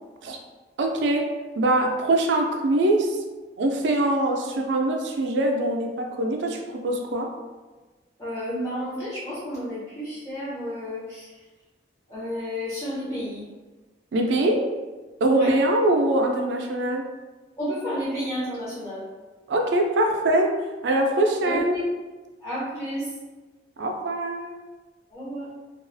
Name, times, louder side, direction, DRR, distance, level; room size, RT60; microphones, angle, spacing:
voice 1, 0.8-1.3 1.6-3.2 3.6-7.3 14.1-14.6 15.2-17.1 19.5-20.5 20.8-21.8 23.8-24.5, right 1 dB, 75° right, 2 dB, 0.4 m, -23 dB
voice 2, 8.2-11.2 12.1-13.4 15.3-15.5 17.6-19.0 21.4-21.8 22.4-23.0 25.1-25.5, equal, 15° left, -10 dB, 0.6 m, -31 dB
2.3 x 2.3 x 2.5 m, 1.2 s
head